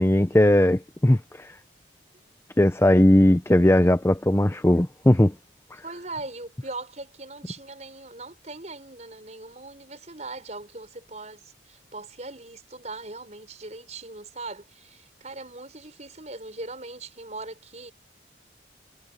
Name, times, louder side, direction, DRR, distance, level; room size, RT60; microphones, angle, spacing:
voice 1, 0.0-1.5 2.6-5.3, left 1 dB, 15° left, 0.5 m, -18 dB
voice 2, 5.8-17.9, right 2 dB, 35° right, 5.9 m, -40 dB
head